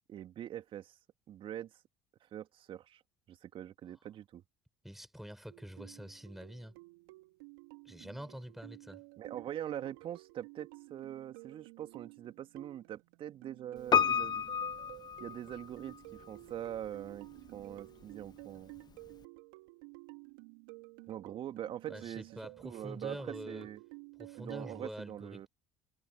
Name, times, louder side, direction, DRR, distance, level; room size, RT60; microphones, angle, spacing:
voice 1, 0.1-0.9 1.3-1.8 2.2-3.0 3.3-4.4 9.2-14.4 15.2-18.7 21.1-22.3 22.6-23.8 24.4-25.5, right 11 dB, 50° right, 2.6 m, -43 dB
voice 2, 4.8-6.7 7.8-9.0 21.9-23.7 24.2-25.5, equal, ahead, 6.9 m, -46 dB
sound 1, 5.5-24.9, right 29 dB, 75° right, 3.7 m, -53 dB
Piano, 13.9-16.0 16.2-16.3, left 7 dB, 40° left, 1.4 m, -30 dB
hypercardioid pair, 65°, 11 cm